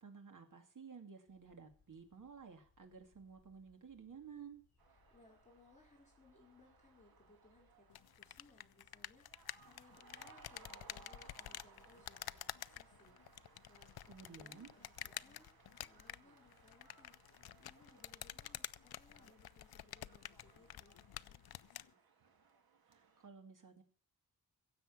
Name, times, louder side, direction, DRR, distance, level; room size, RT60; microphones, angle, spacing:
voice 1, 0.0-4.6 14.1-14.7 22.9-23.8, right 6 dB, 55° right, 5 dB, 2.6 m, -54 dB
sound 1, 1.3-15.2, left 4 dB, 45° left, 5.9 m, -75 dB
sound 2, 4.8-23.3, right 5 dB, 75° right, 2.0 m, -65 dB
voice 2, 4.9-7.9 8.2-13.4 13.7-17.2 17.6-22.1, left 2 dB, 20° left, -2 dB, 4.7 m, -67 dB
sound 3, 7.9-21.9, left 12 dB, 80° left, 0.5 m, -50 dB
16.5 x 7.7 x 7.4 m, 0.43 s
wide cardioid pair, 170°, 37 cm